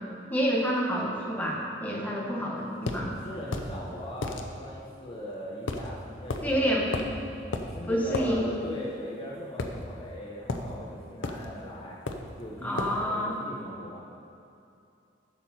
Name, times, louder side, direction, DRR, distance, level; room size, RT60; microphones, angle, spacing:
voice 1, 0.3-3.2 6.4-6.9 7.9-8.4 12.6-13.3, equal, 10° left, -3 dB, 1.4 m, -28 dB
sound 1, 2.9-3.0 3.5-3.7 4.2-4.4 5.7-5.9 6.3-6.5 6.9-7.2 7.5-7.7 8.1-8.3 9.6-10.1 10.5-10.7 11.2-11.5 12.1-12.3 12.8-13.0, left 2 dB, 85° left, 0.7 m, -32 dB
voice 2, 3.2-6.8 7.7-12.0 12.4-14.0, left 1 dB, 30° left, -5 dB, 1.0 m, -40 dB
11.5 x 6.7 x 4.4 m, 2.7 s
head